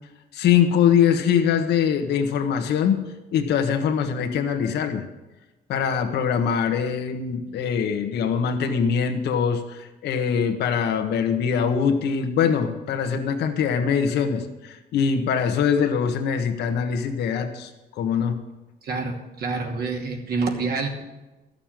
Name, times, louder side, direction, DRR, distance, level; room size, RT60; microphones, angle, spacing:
voice 1, 0.3-3.0 3.3-5.1 5.7-18.4, left 7 dB, 80° left, 6 dB, 1.4 m, -23 dB
voice 2, 18.8-20.9, right 4 dB, 65° right, 1 dB, 2.5 m, -27 dB
13.0 x 6.8 x 9.0 m, 1.1 s
cardioid pair, 115°, 17 cm